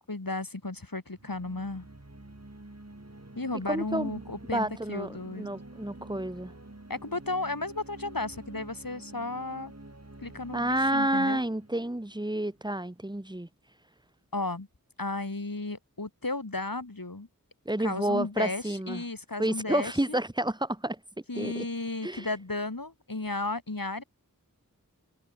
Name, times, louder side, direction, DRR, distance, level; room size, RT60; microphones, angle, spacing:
voice 1, 0.1-1.9 3.3-5.5 6.9-9.7 10.2-11.4 14.3-14.7 15.0-17.3 17.8-20.2 21.3-24.0, left 2 dB, 75° left, 7.5 m, -34 dB
sound 1, 1.1-12.7, right 2 dB, 50° right, 6.4 m, -48 dB
voice 2, 3.7-4.2 4.5-6.5 10.5-13.5 17.6-19.0 19.4-21.0 21.3-21.7 22.0-22.2, right 1 dB, 10° right, 1.6 m, -30 dB
open air
wide cardioid pair, 40°, 34 cm